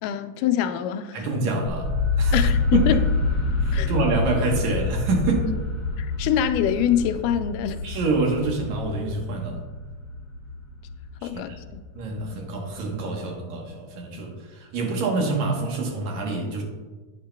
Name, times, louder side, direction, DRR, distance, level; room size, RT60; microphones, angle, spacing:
voice 1, 0.0-1.2 2.3-3.0 3.7-4.0 6.0-7.9 11.2-11.8, left 10 dB, 85° left, 9 dB, 2.1 m, -24 dB
voice 2, 1.1-1.9 2.2-2.9 3.6-5.5 7.8-9.6 11.2-11.6 11.9-16.6, right 3 dB, 65° right, 0 dB, 2.3 m, -26 dB
sound 1, 1.7-13.5, left 3 dB, 55° left, 3.7 m, -27 dB
10.5 x 9.4 x 2.2 m, 1.3 s
omnidirectional pair, 3.7 m